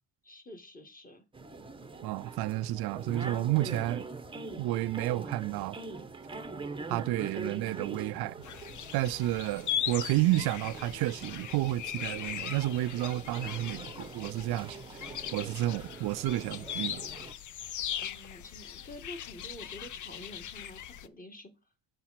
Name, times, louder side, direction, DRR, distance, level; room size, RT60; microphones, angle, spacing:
voice 1, 0.2-1.3 18.0-21.5, left 1 dB, 20° left, 1.8 m, -48 dB
sound 1, 1.3-17.3, right 4 dB, 10° right, 0.9 m, -43 dB
voice 2, 2.0-4.0 4.6-5.8 6.9-8.4 8.9-14.8 15.3-17.1, right 15 dB, 65° right, 0.5 m, -31 dB
sound 2, 8.4-21.1, left 10 dB, 45° left, 0.6 m, -39 dB
7.4 x 4.4 x 5.8 m
cardioid pair, 105°, 42 cm